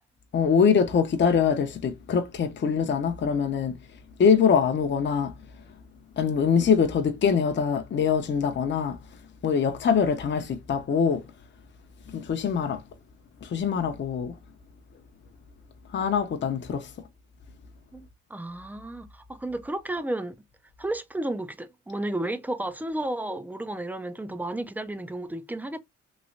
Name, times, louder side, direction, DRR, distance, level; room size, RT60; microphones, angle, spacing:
voice 1, 0.3-3.7 4.2-5.3 6.2-9.0 9.4-11.2 12.1-12.8 13.4-14.3 15.9-16.9, left 6 dB, 40° left, 0.7 m, -23 dB
voice 2, 17.9-20.3 20.8-25.8, right 1 dB, 5° right, 0.5 m, -32 dB
3.1 x 3.0 x 2.6 m
cardioid pair, 90°, 30 cm